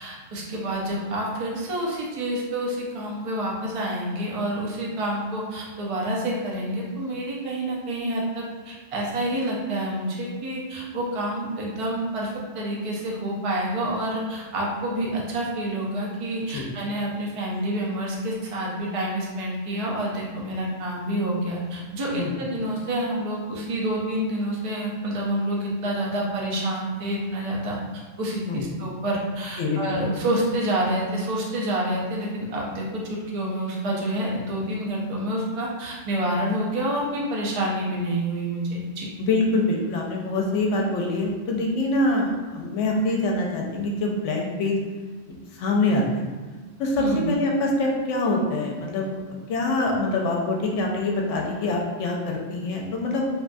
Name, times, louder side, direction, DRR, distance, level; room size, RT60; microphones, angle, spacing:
voice 1, 0.0-39.1 47.0-47.2, right 1 dB, 60° right, -3 dB, 0.3 m, -28 dB
voice 2, 39.2-44.8 45.5-46.2 46.8-49.2 49.5-53.2, left 2 dB, 70° left, -1 dB, 0.9 m, -24 dB
3.0 x 2.2 x 2.5 m, 1.3 s
omnidirectional pair, 1.3 m